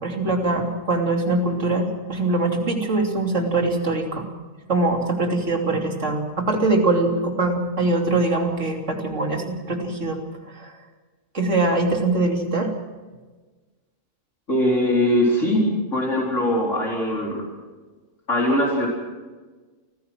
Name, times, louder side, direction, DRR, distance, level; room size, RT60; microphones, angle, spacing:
voice 1, 0.0-4.3 4.7-10.2 10.5-10.7 11.3-12.7, right 2 dB, 65° right, 1 dB, 3.5 m, -22 dB
voice 2, 14.5-15.6 15.9-17.4 18.3-18.9, left 1 dB, 65° left, -2 dB, 4.6 m, -21 dB
29.0 x 15.5 x 6.1 m, 1.3 s
omnidirectional pair, 1.3 m